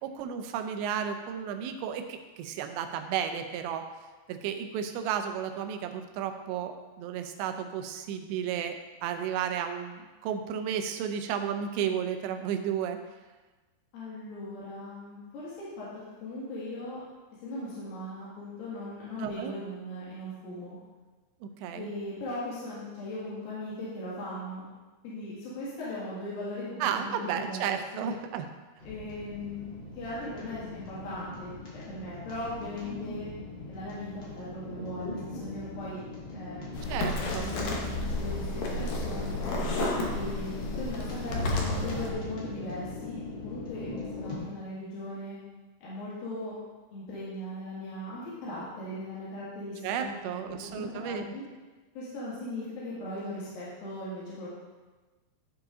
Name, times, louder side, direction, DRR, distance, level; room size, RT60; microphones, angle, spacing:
voice 1, 0.0-3.9 4.3-8.8 9.0-13.0 19.2-19.5 21.4-21.9 26.8-28.5 36.9-37.6 49.8-51.3, right 8 dB, 90° right, 7 dB, 2.9 m, -33 dB
voice 2, 13.9-15.9 16.2-17.0 17.4-20.8 21.7-24.6 25.0-28.1 28.8-33.3 33.7-34.1 34.4-36.0 36.3-36.6 37.4-39.4 40.1-43.9 44.1-45.4 45.8-46.5 46.9-50.2 50.4-51.4 52.0-54.5, left 1 dB, 60° left, -9 dB, 3.7 m, -39 dB
sound 1, 28.8-44.4, left 2 dB, 40° left, 1.8 m, -39 dB
sound 2, 36.7-42.1, left 2 dB, 85° left, 1.5 m, -32 dB
12.5 x 4.8 x 3.8 m, 1.3 s
omnidirectional pair, 5.0 m